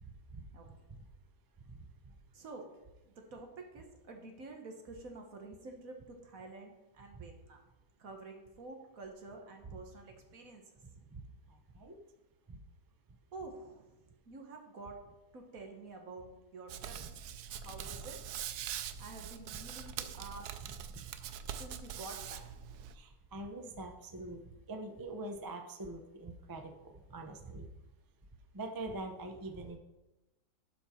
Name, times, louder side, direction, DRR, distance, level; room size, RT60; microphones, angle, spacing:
voice 1, 0.0-1.0 1.7-1.8 2.0-2.2 7.1-7.2 10.8-11.2 11.5-12.0 12.5-12.6 22.9-27.7 28.5-29.8, right 2 dB, 25° right, 5 dB, 0.4 m, -45 dB
voice 2, 2.3-2.7 3.0-7.6 8.0-10.8 13.3-15.0 15.3-16.3 16.5-17.0 17.6-18.2 19.0-20.5 21.6-22.4, right 3 dB, 65° right, 3 dB, 1.7 m, -49 dB
Hands, 16.7-22.9, right 9 dB, 90° right, 1.1 m, -43 dB
11.5 x 5.3 x 4.4 m, 0.99 s
omnidirectional pair, 1.6 m